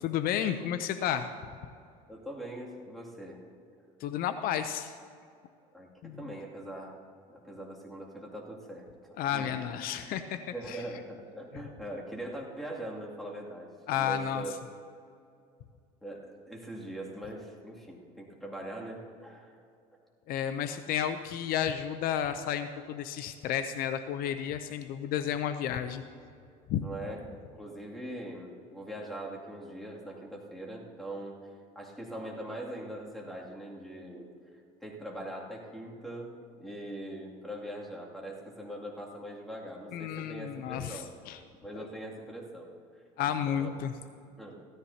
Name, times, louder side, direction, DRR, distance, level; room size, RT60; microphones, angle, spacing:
voice 1, 0.0-1.3 4.0-5.0 6.0-6.3 9.2-10.4 10.7-10.8 13.9-14.6 20.3-26.0 26.7-26.9 39.9-41.4 43.2-43.9, left 9 dB, 65° left, 9 dB, 0.6 m, -32 dB
voice 2, 2.1-3.4 5.7-7.0 7.3-9.6 10.5-14.5 16.0-19.6 26.8-27.2 27.6-34.3 34.8-41.1 41.6-43.7 44.4-44.6, right 1 dB, ahead, -3 dB, 2.5 m, -42 dB
16.5 x 13.5 x 2.8 m, 2.4 s
supercardioid pair, 105°, 16 cm